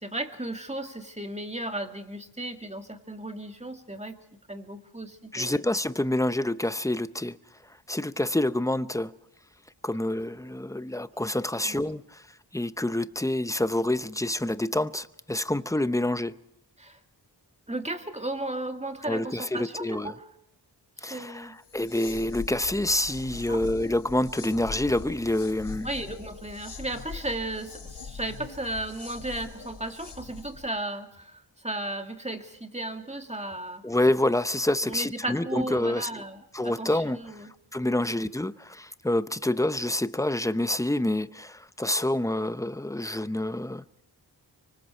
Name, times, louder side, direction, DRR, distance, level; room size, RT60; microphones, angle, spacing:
voice 1, 0.0-4.2 4.5-5.6 11.1-11.2 11.6-11.8 16.8-17.0 17.7-20.3 21.0-21.5 23.5-23.6 25.8-33.8 34.8-37.5 38.1-38.2, right 1 dB, 15° right, 2.3 m, -35 dB
voice 2, 5.3-7.4 7.9-9.2 9.8-12.2 12.5-16.4 19.0-20.1 21.0-25.9 33.8-36.2 36.5-37.2 37.7-43.8, left 1 dB, 5° left, 0.8 m, -27 dB
sound 1, 21.6-30.7, left 5 dB, 70° left, 1.5 m, -42 dB
25.0 x 24.5 x 4.5 m
wide cardioid pair, 55°, 43 cm